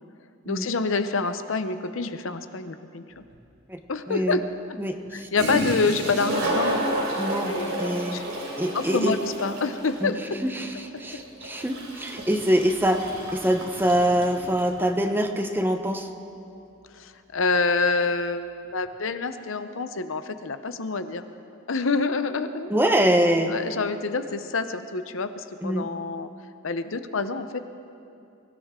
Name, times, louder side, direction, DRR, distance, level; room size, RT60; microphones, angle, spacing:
voice 1, 0.5-3.2 3.9-4.4 5.1-6.9 7.5-7.8 8.1-8.2 8.7-10.2 16.9-21.3 21.7-22.7 23.5-26.3 26.6-27.6, left 4 dB, 65° left, 10 dB, 0.7 m, -27 dB
Toilet flush, 3.3-3.4 5.1-5.2 5.3-14.7, right 1 dB, 65° right, 3.8 m, -31 dB
voice 2, 4.1-4.4 4.8-5.3 7.2-8.2 8.6-9.2 10.0-10.1 10.4-10.7 11.0-16.1 22.7-23.5 25.6-25.9, equal, 10° right, 6 dB, 0.8 m, -24 dB
24.0 x 16.0 x 3.7 m, 2.6 s
head